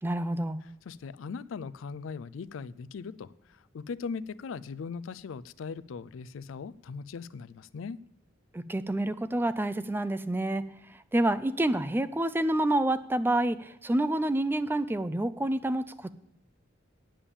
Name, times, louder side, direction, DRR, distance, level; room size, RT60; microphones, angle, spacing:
voice 1, 0.0-0.6 8.5-10.6 10.9-16.1, right 1 dB, 10° right, 14 dB, 0.4 m, -28 dB
voice 2, 0.6-8.0, left 5 dB, 75° left, 19 dB, 0.4 m, -39 dB
8.8 x 8.7 x 7.0 m, 0.76 s
head